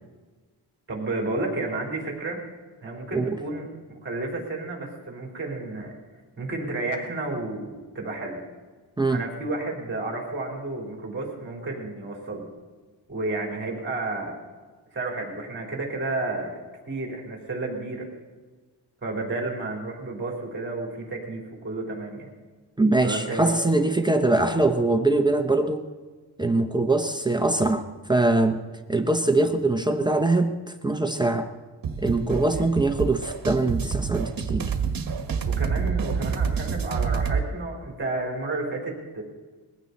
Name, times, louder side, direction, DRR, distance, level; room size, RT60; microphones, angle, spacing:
voice 1, 0.9-2.4 2.8-3.7 4.0-6.0 6.4-8.4 9.1-12.4 13.1-14.4 14.9-16.6 16.9-18.1 19.0-22.3 23.0-23.6 32.5-32.6 35.4-39.2, right 2 dB, 25° right, 0 dB, 4.0 m, -31 dB
voice 2, 22.8-25.8 26.4-28.6 28.9-30.6 30.8-31.5 32.0-34.6, right 2 dB, 10° right, 5 dB, 0.7 m, -22 dB
sound 1, 31.8-37.4, right 6 dB, 55° right, 1.6 m, -27 dB
21.5 x 16.0 x 4.2 m, 1.4 s
wide cardioid pair, 150°, 41 cm